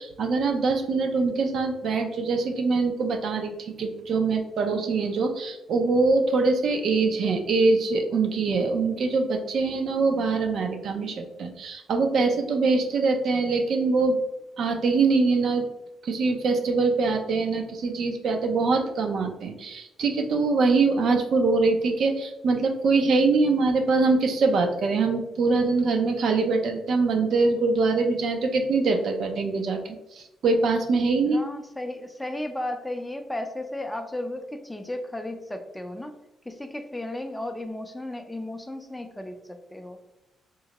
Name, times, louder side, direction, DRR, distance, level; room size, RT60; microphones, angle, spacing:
voice 1, 0.0-14.2 14.6-15.7 16.0-31.4, right 3 dB, 65° right, 4 dB, 0.5 m, -23 dB
voice 2, 31.2-36.1 36.5-40.0, left 1 dB, 10° left, 6 dB, 0.4 m, -34 dB
3.7 x 2.1 x 2.9 m, 0.95 s
cardioid pair, 90°, 0 cm